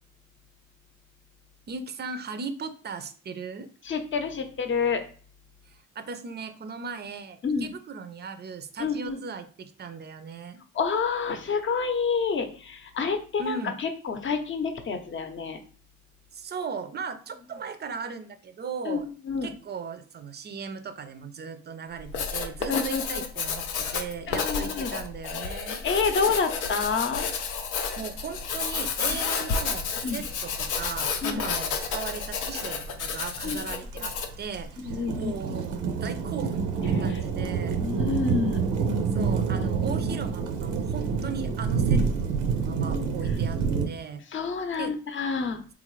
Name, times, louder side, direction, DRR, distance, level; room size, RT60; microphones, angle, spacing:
voice 1, 1.7-3.7 5.7-10.6 13.4-13.8 16.3-19.1 19.4-25.8 28.0-37.8 39.1-44.2 44.8-45.0, right 5 dB, 35° right, 10 dB, 0.5 m, -37 dB
voice 2, 3.8-5.0 7.4-7.7 8.8-9.2 10.7-15.6 18.8-19.5 22.7-23.0 24.3-24.9 25.8-27.3 30.0-30.2 31.2-31.4 33.4-33.6 34.8-35.3 36.9-37.2 37.8-38.6 44.3-45.6, left 5 dB, 40° left, 6 dB, 0.7 m, -28 dB
Writing, 22.0-34.4, left 6 dB, 85° left, 0.6 m, -31 dB
sound 1, 28.2-28.3 28.5-43.9, right 5 dB, 80° right, 0.6 m, -28 dB
3.6 x 2.5 x 3.1 m, 0.42 s
cardioid pair, 90°, 30 cm